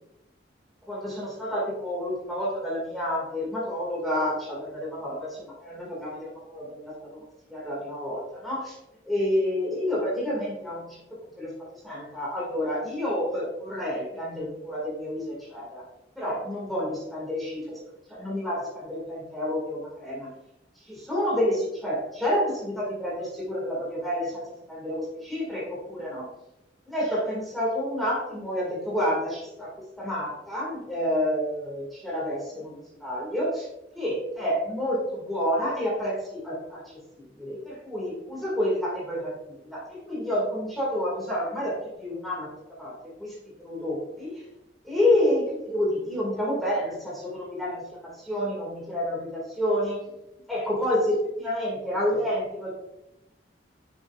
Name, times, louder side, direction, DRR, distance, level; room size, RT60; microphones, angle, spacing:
voice 1, 0.9-7.2 7.5-8.8 9.0-11.0 11.4-15.8 16.2-17.8 18.1-20.3 20.9-24.4 24.7-26.3 26.9-29.7 30.0-33.7 34.0-42.5 42.8-42.9 43.2-44.4 44.8-50.0 50.5-52.7, left 1 dB, ahead, -7 dB, 2.1 m, -29 dB
9.6 x 6.9 x 2.4 m, 0.91 s
head